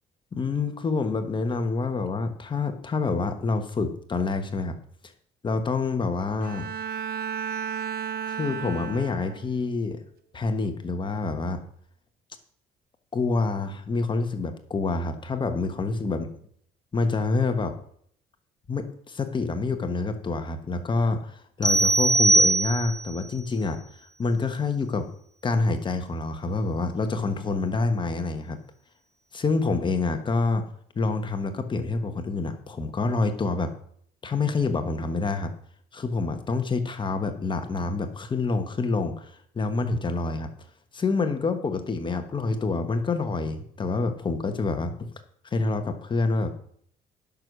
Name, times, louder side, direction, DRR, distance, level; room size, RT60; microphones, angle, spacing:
voice 1, 0.3-4.8 5.4-6.7 8.3-10.0 10.3-11.6 13.1-16.3 16.9-17.8 18.7-23.8 24.2-25.1 25.4-28.6 29.3-30.6 30.9-33.7 34.2-35.5 35.9-40.5 40.9-45.1 45.5-46.5, left 3 dB, 30° left, 7 dB, 1.4 m, -27 dB
Bowed string instrument, 6.4-9.6, right 7 dB, 65° right, 0.9 m, -33 dB
sound 1, 21.6-23.1, right 2 dB, 5° left, 1.1 m, -21 dB
10.5 x 6.4 x 6.3 m, 0.63 s
cardioid pair, 110°, 17 cm